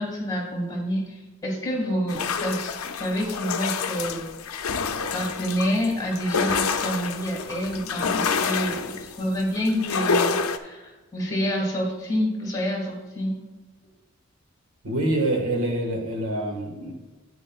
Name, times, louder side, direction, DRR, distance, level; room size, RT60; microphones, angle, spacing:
voice 1, 0.0-4.3 5.1-13.4, equal, 15° left, -1 dB, 1.9 m, -28 dB
sound 1, 2.1-10.6, left 5 dB, 80° left, 0.5 m, -28 dB
voice 2, 14.8-16.9, right 1 dB, 70° right, 1 dB, 1.6 m, -26 dB
9.0 x 8.9 x 2.4 m, 1.2 s
head